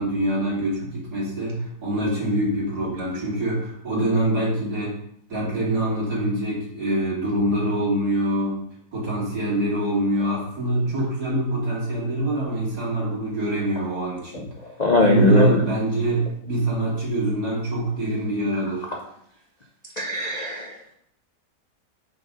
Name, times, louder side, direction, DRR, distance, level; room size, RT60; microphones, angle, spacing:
voice 1, 0.0-5.0 5.3-8.6 8.9-14.5 15.0-18.9, right 1 dB, 65° right, -5 dB, 2.9 m, -24 dB
voice 2, 14.8-15.5 20.0-20.7, left 2 dB, 45° left, 0 dB, 0.5 m, -19 dB
5.8 x 4.0 x 5.2 m, 0.71 s
omnidirectional pair, 1.8 m